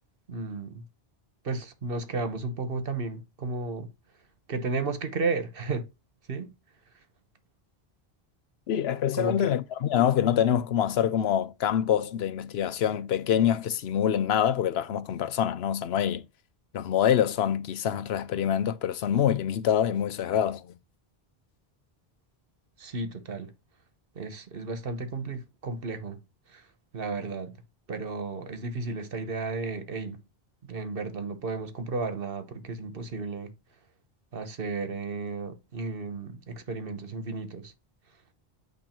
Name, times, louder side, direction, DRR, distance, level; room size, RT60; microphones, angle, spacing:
voice 1, 0.3-0.8 1.4-3.9 4.5-5.8 6.3-6.5 9.1-9.5 22.8-23.5 24.1-26.2 26.5-26.7 26.9-27.5 27.9-30.2 30.7-33.5 34.3-37.7, right 3 dB, 65° right, 1.3 m, -33 dB
voice 2, 8.7-16.3 16.7-20.7, left 9 dB, 85° left, 0.9 m, -25 dB
8.9 x 3.1 x 4.4 m
omnidirectional pair, 1.0 m